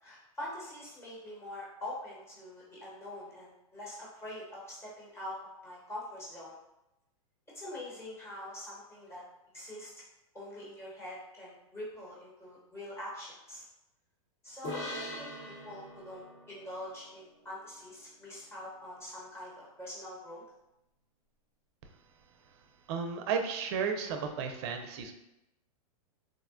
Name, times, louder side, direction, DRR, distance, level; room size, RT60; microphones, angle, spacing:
voice 1, 0.0-5.4 5.6-6.5 7.5-9.2 9.5-9.9 10.3-13.7 14.4-20.4, left 1 dB, 15° left, -6 dB, 1.1 m, -44 dB
sound 1, 14.6-18.1, left 1 dB, 35° left, 1.0 m, -43 dB
voice 2, 22.9-25.1, right 6 dB, 45° right, 5 dB, 0.4 m, -33 dB
3.7 x 2.1 x 2.4 m, 0.88 s
hypercardioid pair, 135°, 19 cm